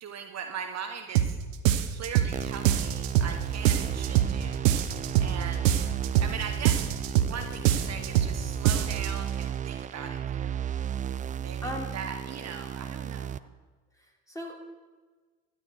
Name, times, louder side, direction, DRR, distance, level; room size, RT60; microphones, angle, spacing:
voice 1, 0.0-1.4 1.9-4.6 5.2-5.7 6.2-6.8 7.1-10.8 11.4-13.5, right 7 dB, 45° right, 6 dB, 1.0 m, -40 dB
sound 1, 1.1-1.3 1.6-2.3 2.6-3.3 3.6-4.3 4.6-5.3 5.6-6.3 6.6-7.3 7.6-8.3 8.6-9.1, right 12 dB, 80° right, 0.8 m, -23 dB
sound 2, 2.3-13.4, right 9 dB, 20° right, 0.3 m, -34 dB
voice 2, 11.6-11.9 14.0-14.5, left 1 dB, 10° left, -1 dB, 3.3 m, -37 dB
12.5 x 11.0 x 4.7 m, 1.4 s
hypercardioid pair, 55°, 38 cm